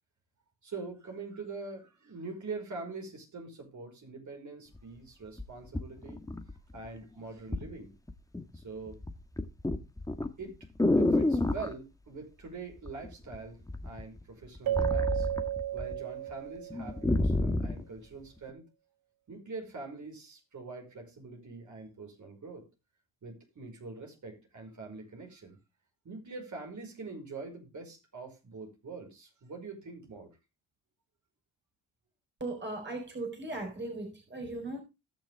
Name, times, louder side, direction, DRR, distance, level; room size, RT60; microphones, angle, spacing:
voice 1, 0.6-6.2 6.7-7.9 8.5-9.0 10.4-10.6 11.0-15.3 15.7-18.6 19.3-22.7 23.2-25.6 26.0-30.3, right 3 dB, 50° right, 5.0 m, -44 dB
sound 1, 4.8-4.9 5.4-6.9 7.5-7.7 8.1-8.6 8.9-11.7 12.9-13.4 13.7-16.0 16.3-16.4 16.7-17.8 18.5-18.6, left 2 dB, 10° left, 1.7 m, -29 dB
Keyboard (musical), 14.7-17.1, right 12 dB, 70° right, 1.0 m, -33 dB
voice 2, 32.4-34.8, right 2 dB, 30° right, 4.0 m, -38 dB
18.5 x 6.2 x 3.5 m
supercardioid pair, 55°, 37 cm